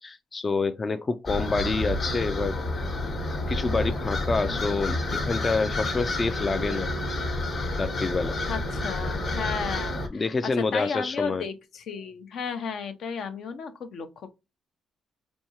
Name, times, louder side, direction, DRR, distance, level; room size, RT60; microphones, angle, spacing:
voice 1, 0.0-2.9 3.5-7.3 7.8-8.4 10.1-11.4, left 3 dB, 30° left, 0.3 m, -28 dB
sound 1, 1.3-10.1, left 2 dB, 50° left, 1.0 m, -29 dB
voice 2, 8.5-10.2 10.7-14.1, left 6 dB, 65° left, 0.6 m, -34 dB
4.3 x 2.7 x 2.9 m
cardioid pair, 90°, 0 cm